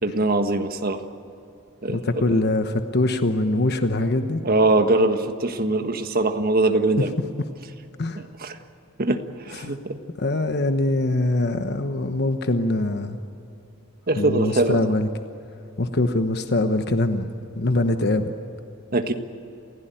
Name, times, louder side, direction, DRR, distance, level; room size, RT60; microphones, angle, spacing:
voice 1, 0.0-1.0 1.8-2.0 2.3-2.4 4.4-7.1 8.4-8.6 9.0-9.2 9.4-10.0 14.1-14.8 18.9-19.1, right 2 dB, 45° right, 7 dB, 1.5 m, -22 dB
voice 2, 1.9-4.4 7.0-7.1 7.4-7.5 8.0-8.2 9.5-9.8 10.2-13.2 14.2-15.1 15.8-18.3, left 2 dB, 55° left, 8 dB, 1.1 m, -23 dB
28.5 x 16.0 x 9.1 m, 2.8 s
head